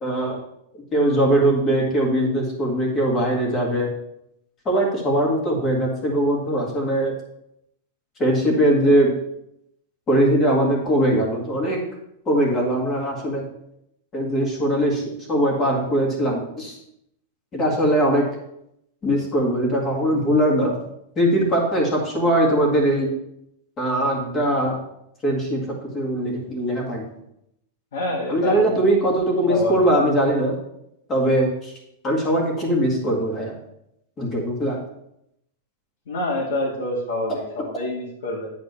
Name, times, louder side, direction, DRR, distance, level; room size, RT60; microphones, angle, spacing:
voice 1, 0.0-0.4 0.9-3.9 4.7-7.1 8.2-9.1 10.1-11.8 12.3-13.4 14.1-15.0 15.3-16.8 17.5-18.2 19.0-20.8 21.2-23.1 23.8-24.8 25.2-27.0 28.3-30.6 31.1-31.7 32.0-33.6 34.2-34.8, right 1 dB, 20° left, 0 dB, 1.9 m, -21 dB
voice 2, 27.9-28.7 29.5-29.9 36.1-38.5, left 2 dB, 70° left, -4 dB, 2.1 m, -27 dB
9.5 x 4.2 x 6.8 m, 0.79 s
supercardioid pair, 175°, 0 cm